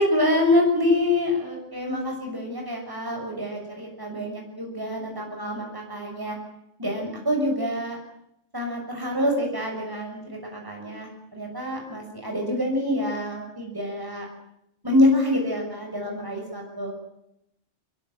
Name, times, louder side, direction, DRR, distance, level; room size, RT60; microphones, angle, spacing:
voice 1, 0.0-6.4 6.8-8.0 8.5-14.3 14.8-16.9, left 1 dB, 15° right, 0 dB, 6.7 m, -26 dB
25.0 x 22.0 x 9.1 m, 0.79 s
omnidirectional pair, 1.3 m